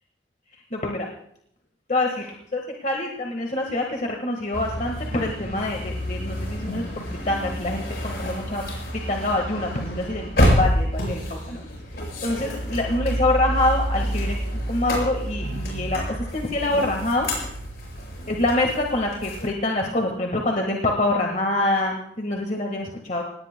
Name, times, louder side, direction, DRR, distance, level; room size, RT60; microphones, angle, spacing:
voice 1, 0.7-1.1 1.9-8.6 8.9-11.7 11.9-17.3 18.3-23.2, left 2 dB, 40° left, 1 dB, 1.6 m, -26 dB
sound 1, 4.5-19.5, equal, 60° left, 7.2 m, -28 dB
26.5 x 18.5 x 2.2 m, 0.70 s
head